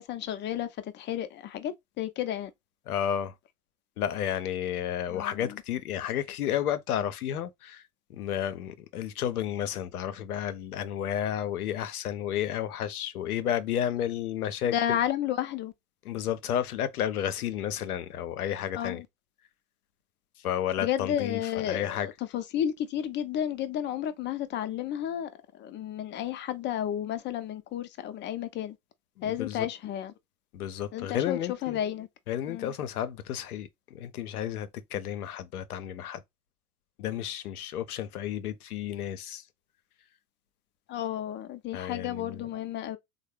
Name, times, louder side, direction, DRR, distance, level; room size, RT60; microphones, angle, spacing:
voice 1, 0.0-2.5 5.1-5.6 14.7-15.7 18.8-19.1 20.8-28.8 29.2-30.1 30.9-32.1 32.5-32.7 40.9-43.0, left 10 dB, 25° left, 0.4 m, -32 dB
voice 2, 2.9-3.3 4.0-7.8 8.1-15.0 16.0-19.0 20.4-22.1 29.2-29.7 30.5-31.8 32.3-36.2 37.0-39.4 41.7-42.4, left 10 dB, 85° left, 0.5 m, -32 dB
3.4 x 2.0 x 3.1 m
hypercardioid pair, 75°, 44 cm